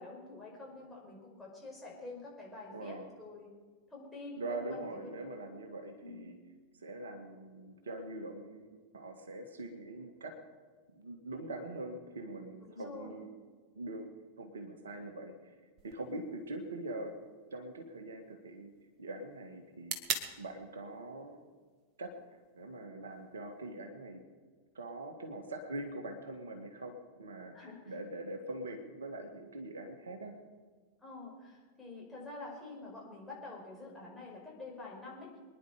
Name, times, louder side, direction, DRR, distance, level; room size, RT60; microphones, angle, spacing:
voice 1, 0.0-3.5 3.9-5.1 6.0-6.3 12.6-13.2 16.0-16.2 27.5-28.0 31.0-35.3, left 3 dB, 10° left, -3 dB, 5.2 m, -47 dB
voice 2, 2.7-3.1 4.3-6.4 6.8-10.4 10.9-13.3 13.8-14.1 14.4-15.5 15.8-17.1 17.5-18.7 19.0-20.0 20.4-21.4 22.0-22.1 22.6-24.2 24.8-30.4, right 2 dB, 70° right, 5 dB, 1.8 m, -43 dB
sound 1, 15.8-23.8, right 6 dB, 35° right, 1.7 m, -46 dB
25.0 x 10.5 x 5.0 m, 1.5 s
figure-of-eight pair, 90°, 0 cm